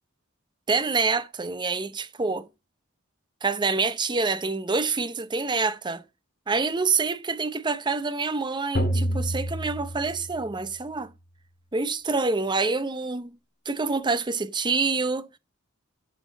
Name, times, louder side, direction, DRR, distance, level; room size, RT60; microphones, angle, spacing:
voice 1, 0.7-2.5 3.4-6.0 6.5-11.1 11.7-13.3 13.7-15.3, right 4 dB, 20° right, 0.7 m, -26 dB
sound 1, 8.7-10.7, equal, 55° left, 2.3 m, -28 dB
8.3 x 6.1 x 5.0 m
head